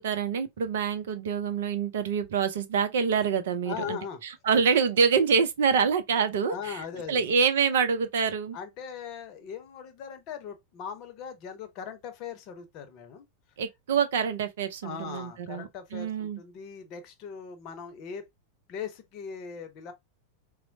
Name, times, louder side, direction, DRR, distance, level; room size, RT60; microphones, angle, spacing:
voice 1, 0.0-4.0 4.5-6.8 7.1-8.6 13.6-16.4, right 6 dB, 60° right, 0.6 m, -26 dB
voice 2, 3.6-4.2 6.5-7.3 8.5-13.3 14.8-18.3 18.7-19.9, left 7 dB, 40° left, 0.7 m, -39 dB
4.2 x 2.0 x 2.6 m
figure-of-eight pair, 90°, 0 cm